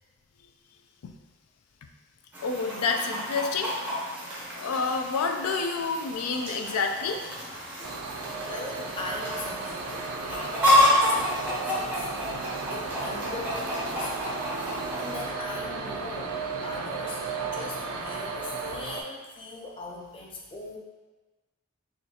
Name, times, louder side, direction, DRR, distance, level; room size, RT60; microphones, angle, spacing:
Chicken rooster, 2.3-15.3, left 1 dB, 5° right, 0.7 m, -29 dB
voice 1, 2.4-3.8 4.5-7.2 11.1-11.2, left 4 dB, 90° left, 4 dB, 0.4 m, -28 dB
sound 1, 7.8-19.0, right 4 dB, 85° right, 0.4 m, -35 dB
voice 2, 7.9-12.1 12.4-14.2 15.0-16.4 16.6-20.8, left 2 dB, 25° left, -1 dB, 0.4 m, -40 dB
4.0 x 2.8 x 2.7 m, 1.3 s
head